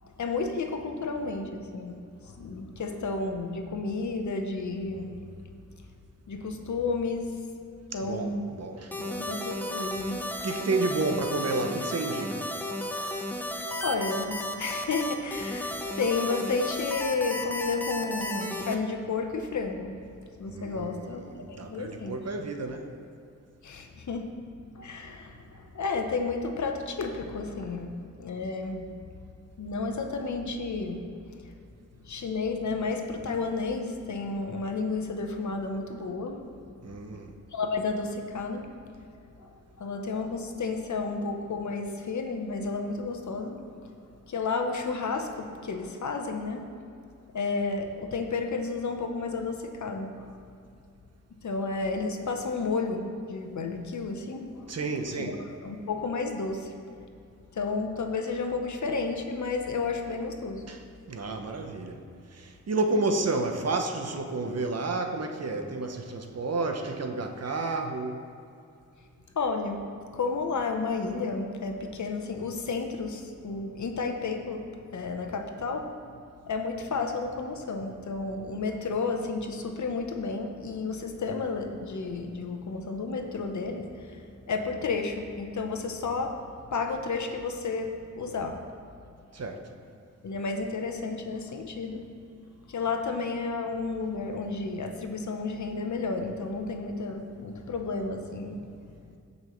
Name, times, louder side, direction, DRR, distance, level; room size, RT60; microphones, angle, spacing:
voice 1, 0.0-5.3 6.3-7.4 7.9-8.5 9.1-10.2 13.8-20.0 20.4-22.2 23.6-24.4 24.7-28.9 29.6-31.5 32.0-36.4 37.5-38.7 39.4-43.9 44.3-46.7 47.3-50.4 51.4-54.8 55.2-55.3 55.6-56.7 57.5-60.6 69.3-69.9 70.1-74.6 74.9-75.9 76.5-86.4 86.7-88.6 90.2-92.0 92.7-98.7, left 4 dB, 65° left, 4 dB, 0.9 m, -32 dB
voice 2, 8.0-9.2 10.4-12.4 20.5-22.9 36.8-37.4 54.7-55.4 60.7-62.0 62.3-68.2 89.3-89.7, right 3 dB, 50° right, 4 dB, 0.9 m, -31 dB
sound 1, 8.9-18.8, left 1 dB, 5° left, 0.8 m, -33 dB
16.0 x 5.4 x 3.1 m, 2.5 s
wide cardioid pair, 80°, 31 cm